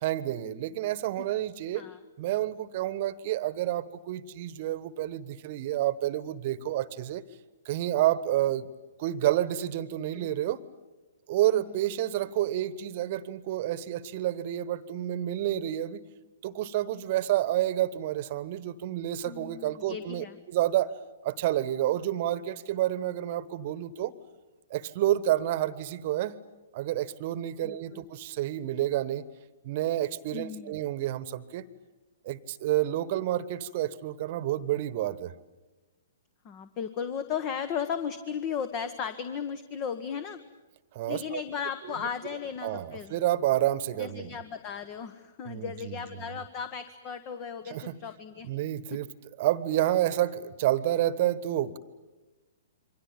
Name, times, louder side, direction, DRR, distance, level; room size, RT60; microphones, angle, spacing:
voice 1, 0.0-1.8 2.2-7.2 7.6-8.7 9.0-10.6 11.3-16.0 16.4-20.9 21.2-24.1 24.7-26.4 26.7-29.2 29.6-31.6 32.2-35.3 40.9-41.4 41.8-42.1 42.6-44.4 45.5-46.2 47.7-48.0 48.4-49.1 49.4-51.8, right 13 dB, 40° right, 18 dB, 1.3 m, -29 dB
voice 2, 19.2-20.4 27.6-28.0 30.3-30.8 36.4-40.4 41.1-43.1 44.0-48.5 48.9-49.0, left 7 dB, 30° left, 12 dB, 1.4 m, -36 dB
28.0 x 24.0 x 8.9 m, 1.1 s
figure-of-eight pair, 115°, 0 cm